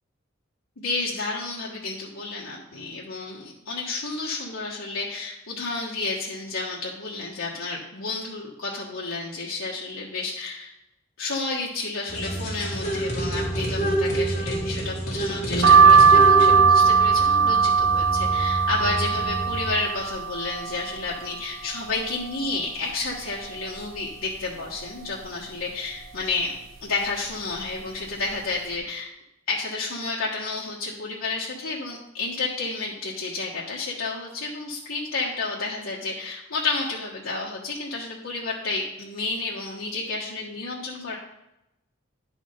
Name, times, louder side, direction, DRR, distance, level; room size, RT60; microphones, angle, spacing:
voice 1, 0.8-10.7 11.2-26.5 26.8-29.1 29.5-41.2, left 3 dB, 90° left, -5 dB, 1.4 m, -31 dB
sound 1, 12.1-19.7, right 1 dB, 35° left, 2.4 m, -28 dB
sound 2, 15.6-21.3 21.8-22.5 22.9-23.0 23.2-24.3 24.8-25.2 25.9-26.3 27.0-27.3 27.6-27.8, right 6 dB, 85° right, 1.1 m, -19 dB
11.0 x 5.0 x 5.1 m, 0.88 s
head